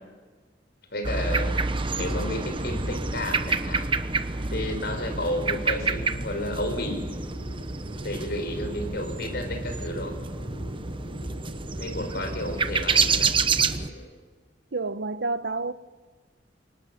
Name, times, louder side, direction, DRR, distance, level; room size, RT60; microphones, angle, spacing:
voice 1, 0.9-1.6 2.0-3.9 4.5-7.0 8.0-10.1 11.8-13.3, left 1 dB, 65° left, 5.5 m, -32 dB
sound 1, 1.0-13.9, right 4 dB, 30° right, 1.1 m, -28 dB
sound 2, 6.5-14.0, left 1 dB, 45° left, 7.3 m, -46 dB
voice 2, 14.7-15.7, right 3 dB, 70° right, 1.0 m, -29 dB
28.5 x 24.5 x 7.3 m
head